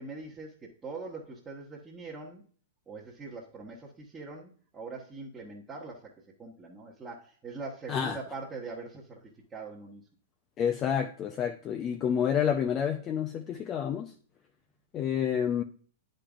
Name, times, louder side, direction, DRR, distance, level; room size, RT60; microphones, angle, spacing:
voice 1, 0.0-2.4 2.9-6.1 6.4-10.0, right 3 dB, 15° right, -5 dB, 1.3 m, -42 dB
voice 2, 10.6-14.1 14.9-15.6, left 8 dB, 30° left, 5 dB, 0.6 m, -29 dB
9.8 x 5.3 x 2.4 m, 0.43 s
figure-of-eight pair, 110°, 0 cm